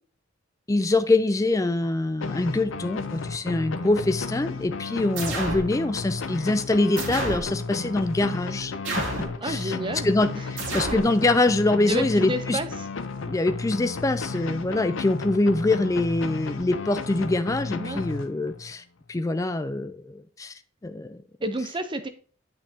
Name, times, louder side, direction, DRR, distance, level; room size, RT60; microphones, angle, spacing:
voice 1, 0.7-9.8 10.0-12.6 13.3-18.8 19.1-20.5 20.8-21.2, left 2 dB, 15° left, 10 dB, 0.3 m, -24 dB
sound 1, 2.2-18.7, left 4 dB, 70° left, 0.6 m, -33 dB
sound 2, 5.2-5.7 7.0-7.5 8.8-9.4 10.6-11.1, right 2 dB, 65° right, 2.7 m, -30 dB
voice 2, 9.4-10.4 10.7-10.8 11.9-12.9 17.8-18.0 21.4-22.1, right 1 dB, 25° right, 9 dB, 0.6 m, -30 dB
8.6 x 6.2 x 2.8 m, 0.41 s
head